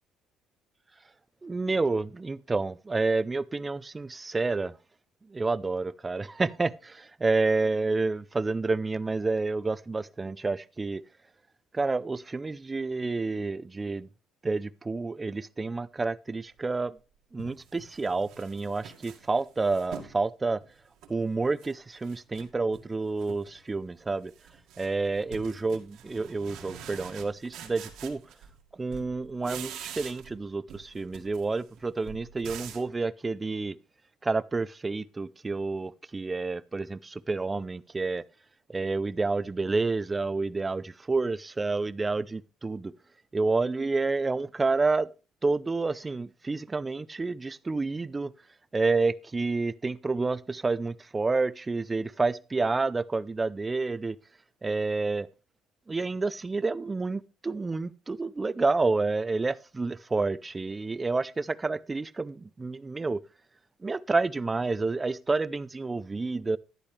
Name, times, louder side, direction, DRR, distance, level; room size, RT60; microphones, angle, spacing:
voice 1, 1.4-4.7 5.3-6.9 7.2-11.0 11.7-14.1 14.4-17.0 17.3-20.6 21.1-24.3 24.8-28.2 28.7-33.8 34.2-38.2 38.7-42.9 43.3-45.1 45.4-48.3 48.7-54.2 54.6-55.3 55.9-63.2 63.8-66.6, right 3 dB, 20° right, 0.5 m, -29 dB
sound 1, 16.7-16.8 17.4-20.2 20.6-21.7 22.0-22.9 23.2-23.6 23.9-28.6 28.9-30.4 30.7-32.9, right 8 dB, 70° right, 1.9 m, -45 dB
11.5 x 10.0 x 3.3 m
cardioid pair, 120°, 0 cm